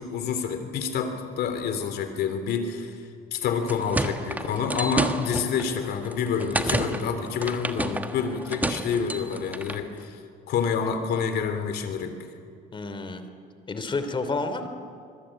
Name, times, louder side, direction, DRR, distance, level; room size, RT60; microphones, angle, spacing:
voice 1, 0.0-3.0 3.3-10.2 10.5-12.2, left 6 dB, 70° left, 8 dB, 3.4 m, -28 dB
sound 1, 3.4-9.8, right 2 dB, 10° right, 1.5 m, -30 dB
voice 2, 12.7-13.2 13.7-14.7, left 3 dB, 30° left, 9 dB, 2.9 m, -30 dB
25.5 x 22.5 x 8.9 m, 2.3 s
cardioid pair, 110°, 17 cm